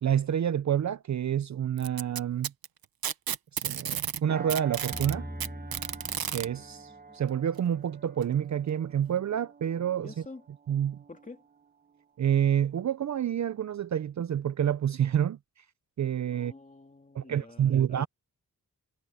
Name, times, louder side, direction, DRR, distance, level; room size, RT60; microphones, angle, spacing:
voice 1, 0.0-2.5 3.5-5.3 6.3-10.1 10.7-11.0 12.2-15.4 16.0-16.5 17.1-18.1, right 9 dB, 55° right, 0.5 m, -28 dB
Packing tape duct tape, 1.8-4.2 4.5-6.5 7.6-7.7 8.2-8.3 9.2-9.3, right 9 dB, 85° right, 1.0 m, -32 dB
sound 1, 4.3-13.1 13.6-13.8, right 5 dB, 25° right, 1.3 m, -49 dB
sound 2, 4.9-7.1, equal, ahead, 1.2 m, -42 dB
voice 2, 10.0-10.4 11.1-11.4 16.3-18.1, left 3 dB, 20° left, 2.7 m, -47 dB
wide cardioid pair, 175°, 35 cm